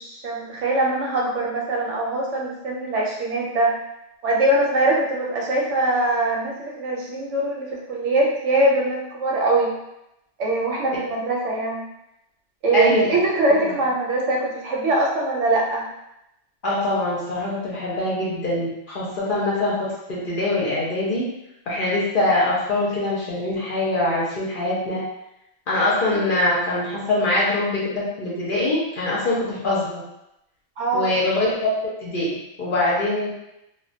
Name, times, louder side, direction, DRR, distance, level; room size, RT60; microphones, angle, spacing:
voice 1, 0.0-3.7 4.2-9.7 10.4-11.8 12.6-15.8 30.8-31.2, right 2 dB, 80° right, -2 dB, 0.9 m, -22 dB
voice 2, 12.7-13.1 16.6-21.3 21.7-25.1 25.7-30.0 30.9-33.3, left 1 dB, 55° left, -6 dB, 0.6 m, -23 dB
2.2 x 2.1 x 2.6 m, 0.85 s
omnidirectional pair, 1.3 m